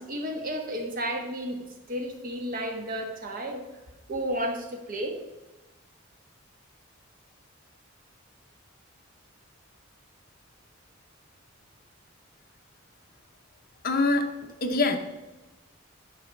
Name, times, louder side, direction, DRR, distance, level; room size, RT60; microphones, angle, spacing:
voice 1, 0.0-1.6 1.9-3.6 4.1-5.1, equal, 45° right, 3 dB, 1.3 m, -32 dB
voice 2, 13.8-14.3 14.6-15.0, left 3 dB, 45° left, 6 dB, 0.8 m, -23 dB
10.5 x 4.1 x 5.7 m, 1.1 s
head